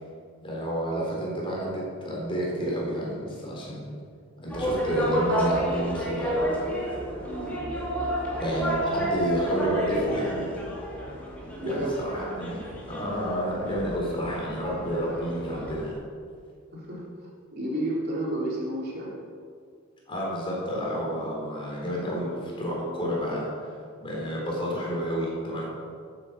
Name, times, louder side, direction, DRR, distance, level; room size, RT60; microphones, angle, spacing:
voice 1, 0.4-3.9 4.4-6.4 8.4-10.6 11.6-12.6 12.9-16.0 20.1-23.7 24.0-25.7, equal, 25° left, -3 dB, 3.7 m, -30 dB
sound 1, 4.5-15.9, right 1 dB, 5° left, 2.7 m, -30 dB
voice 2, 7.2-7.6 11.6-12.2 16.7-19.1, right 1 dB, 50° right, -5 dB, 3.8 m, -32 dB
13.0 x 8.3 x 6.9 m, 2.2 s
head